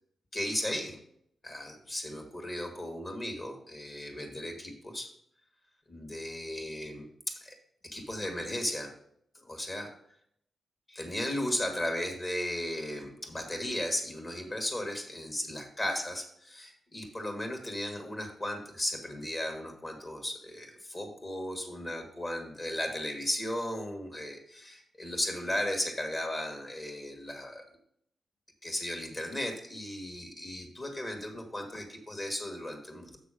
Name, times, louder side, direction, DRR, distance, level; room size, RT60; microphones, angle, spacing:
voice 1, 0.3-1.0 1.4-5.1 5.9-7.6 7.8-8.9 9.3-9.9 10.9-27.6 28.6-33.2, left 1 dB, 25° left, 3 dB, 1.6 m, -36 dB
7.4 x 6.1 x 5.0 m, 0.70 s
wide cardioid pair, 160°, 0 cm